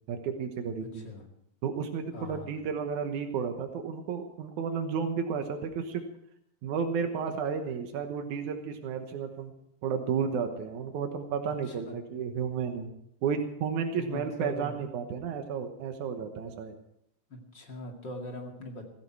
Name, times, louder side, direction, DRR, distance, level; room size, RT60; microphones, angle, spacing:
voice 1, 0.1-1.1 1.6-6.0 6.6-9.5 9.8-12.9 13.2-16.7, right 6 dB, 85° right, 6 dB, 2.6 m, -32 dB
voice 2, 0.8-1.3 2.1-2.6 11.7-12.0 14.0-14.7 17.3-18.8, left 2 dB, 40° left, 2 dB, 2.7 m, -41 dB
16.0 x 15.5 x 4.7 m, 0.74 s
omnidirectional pair, 3.3 m